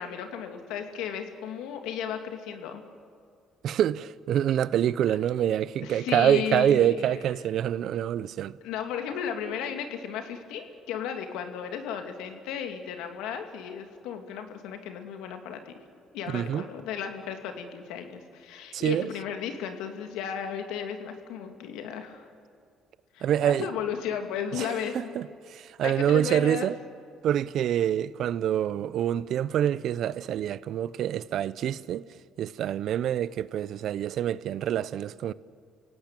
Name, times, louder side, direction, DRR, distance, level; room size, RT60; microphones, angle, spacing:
voice 1, 0.0-2.8 5.1-5.2 5.8-6.9 8.6-15.7 16.1-22.3 23.1-25.2 25.8-26.7, left 8 dB, 85° left, 2.4 m, -34 dB
voice 2, 3.6-8.6 16.3-16.6 18.7-19.1 23.2-23.7 24.5-24.7 24.9-26.8 27.2-32.0 32.4-35.3, right 10 dB, 65° right, 0.6 m, -26 dB
28.0 x 17.5 x 9.0 m
cardioid pair, 95°, 0 cm